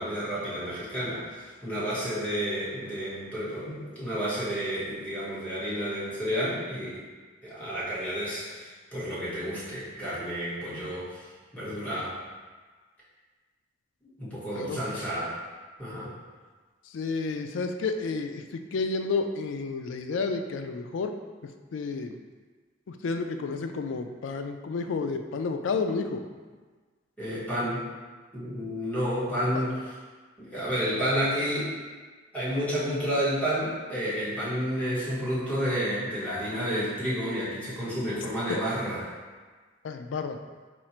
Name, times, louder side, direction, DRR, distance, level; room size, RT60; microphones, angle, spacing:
voice 1, 0.0-7.0 7.4-11.2 11.5-12.1 14.2-15.3 15.8-16.1 27.2-27.9 28.3-29.9 30.4-31.7 32.3-39.0, equal, 10° left, -10 dB, 1.4 m, -30 dB
voice 2, 16.9-21.1 21.7-22.2 22.9-26.3 29.5-29.7 39.8-40.4, left 4 dB, 85° left, 6 dB, 0.4 m, -31 dB
4.4 x 2.4 x 4.3 m, 1.4 s
head